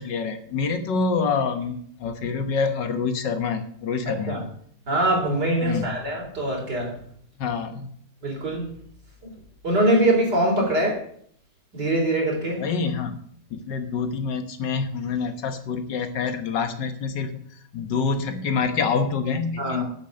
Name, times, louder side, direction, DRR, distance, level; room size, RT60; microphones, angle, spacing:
voice 1, 0.0-4.4 5.6-6.0 7.4-7.9 9.9-10.0 10.6-10.7 12.6-13.2 13.5-17.4 17.7-19.9, left 5 dB, 75° left, 8 dB, 1.9 m, -26 dB
voice 2, 4.1-4.4 4.9-6.9 8.2-8.7 9.6-11.0 11.7-12.6 19.6-19.9, right 1 dB, 70° right, -1 dB, 4.5 m, -23 dB
9.2 x 7.7 x 7.8 m, 0.62 s
omnidirectional pair, 1.9 m